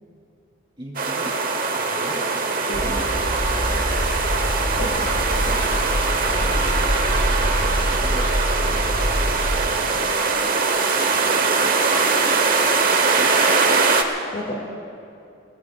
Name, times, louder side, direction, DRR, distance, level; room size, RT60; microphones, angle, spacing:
voice 1, 0.8-1.4 1.7-3.0 6.6-7.4 8.0-8.3 8.6-9.0 9.4-10.5 11.0-12.4 13.0-13.4 13.7-13.8 14.5-14.6, equal, 25° right, -3 dB, 3.8 m, -40 dB
sound 1, 0.9-14.0, right 4 dB, 45° right, 1.1 m, -21 dB
sound 2, 2.7-9.6, equal, 20° left, 2.2 m, -25 dB
voice 2, 4.7-5.8 14.3-14.6, left 1 dB, 45° left, -1 dB, 2.4 m, -33 dB
29.5 x 19.5 x 2.5 m, 2.5 s
head